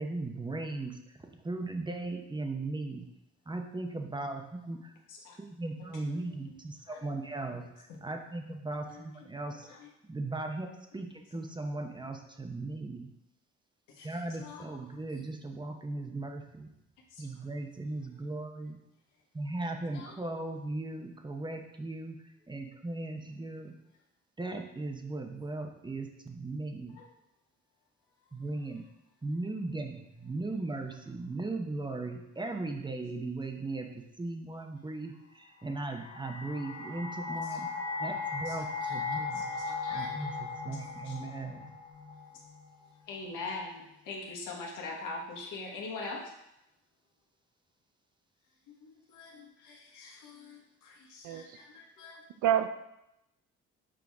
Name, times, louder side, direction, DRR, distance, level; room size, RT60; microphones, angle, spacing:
voice 1, 0.0-3.1 3.5-4.9 5.4-9.7 10.0-10.7 10.9-13.1 14.0-16.7 17.2-18.8 19.3-23.7 24.4-27.0 28.3-28.8 29.2-39.5 39.9-41.6, right 2 dB, 15° right, 4 dB, 0.8 m, -38 dB
voice 2, 5.9-6.6 6.9-7.0 7.5-7.6 8.9-9.1 9.7-9.9 14.0-14.1 14.4-14.8 15.1-15.2 17.1-17.2 19.9-20.1 27.0-27.1 38.4-38.6 38.8-39.0 39.3-40.4 41.0-41.1 43.1-46.2 48.8-52.2, left 3 dB, 90° left, -2 dB, 1.4 m, -43 dB
sound 1, 35.7-42.8, left 4 dB, 40° left, 1.1 m, -37 dB
voice 3, 51.2-51.6 52.4-52.7, right 11 dB, 85° right, 10 dB, 0.5 m, -27 dB
6.2 x 4.6 x 3.5 m, 0.86 s
cardioid pair, 90°, 30 cm